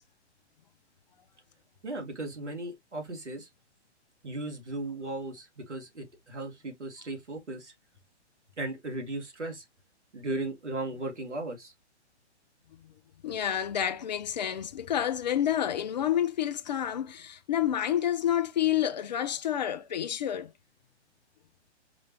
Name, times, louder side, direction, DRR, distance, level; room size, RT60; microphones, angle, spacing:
voice 1, 1.8-3.5 4.2-7.7 8.6-9.6 10.1-11.7, right 2 dB, 80° right, 1.7 m, -36 dB
voice 2, 13.2-20.5, left 10 dB, 40° left, 0.4 m, -29 dB
4.9 x 2.4 x 3.0 m
figure-of-eight pair, 120°, 35 cm